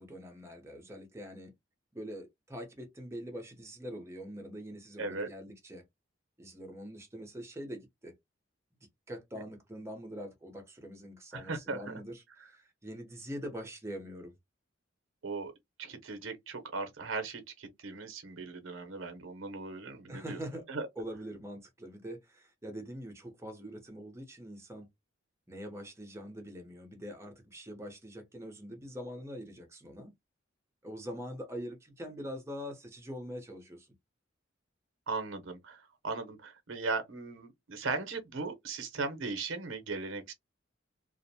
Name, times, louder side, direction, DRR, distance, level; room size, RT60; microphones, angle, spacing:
voice 1, 0.0-1.5 1.9-5.8 6.4-8.1 9.1-14.3 20.1-20.7 21.0-24.9 25.5-30.1 30.8-33.9, equal, 15° right, 0.6 m, -44 dB
voice 2, 5.0-5.3 11.3-12.0 15.2-15.5 15.8-20.4 20.7-20.9 35.1-40.3, right 3 dB, 85° right, 0.7 m, -38 dB
2.4 x 2.1 x 2.7 m
head